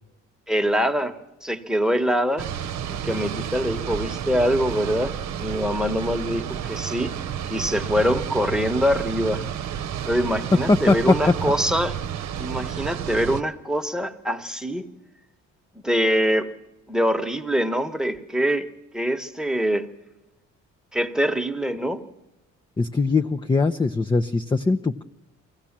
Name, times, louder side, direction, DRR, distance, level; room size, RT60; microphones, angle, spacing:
voice 1, 0.5-1.1 1.4-2.5 2.9-5.1 5.4-7.1 7.5-9.4 10.1-12.0 12.4-14.8 15.8-16.5 16.9-18.7 18.9-19.9 20.9-22.0, equal, ahead, 6 dB, 1.2 m, -24 dB
sound 1, 2.4-13.4, right 9 dB, 65° right, 0.9 m, -31 dB
voice 2, 10.7-11.2 22.8-25.0, left 3 dB, 15° left, 6 dB, 0.6 m, -21 dB
23.0 x 16.5 x 7.4 m, 1.0 s
cardioid pair, 90°, 30 cm